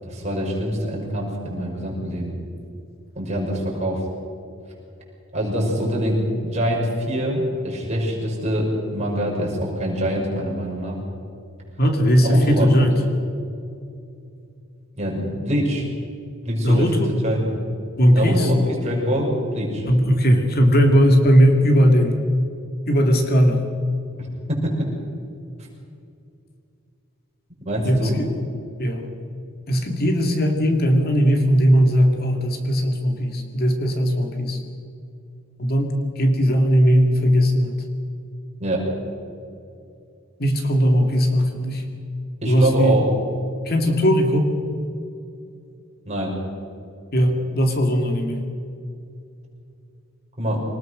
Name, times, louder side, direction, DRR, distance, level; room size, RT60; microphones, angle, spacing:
voice 1, 0.0-2.4 3.2-4.0 5.3-11.0 12.2-12.9 15.0-15.8 16.4-17.5 18.1-19.9 24.2-24.9 27.7-28.2 38.6-38.9 42.4-43.1 46.1-46.4 50.4-50.6, equal, 35° right, -2 dB, 5.7 m, -24 dB
voice 2, 11.8-12.9 16.6-17.1 18.0-18.5 19.9-22.2 22.9-23.6 27.8-28.3 28.8-29.1 29.7-34.6 35.6-37.8 40.4-41.8 42.4-43.0 43.7-44.5 47.1-48.4, equal, 50° left, 3 dB, 2.3 m, -18 dB
24.5 x 19.5 x 6.3 m, 2.5 s
head